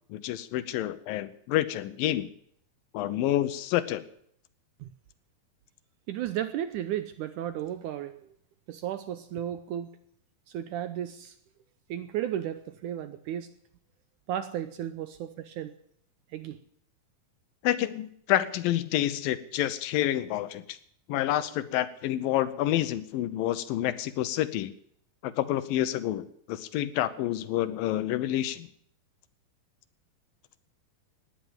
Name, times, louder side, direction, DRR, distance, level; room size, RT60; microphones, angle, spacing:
voice 1, 0.1-2.3 2.9-4.0 17.6-20.8 21.1-24.7 25.2-28.7, left 13 dB, 80° left, 14 dB, 2.5 m, -28 dB
voice 2, 6.1-8.2 8.7-9.9 10.5-11.3 11.9-13.5 14.3-15.7 16.3-16.6, right 11 dB, 75° right, 11 dB, 1.9 m, -34 dB
17.5 x 10.5 x 7.2 m, 0.66 s
omnidirectional pair, 4.2 m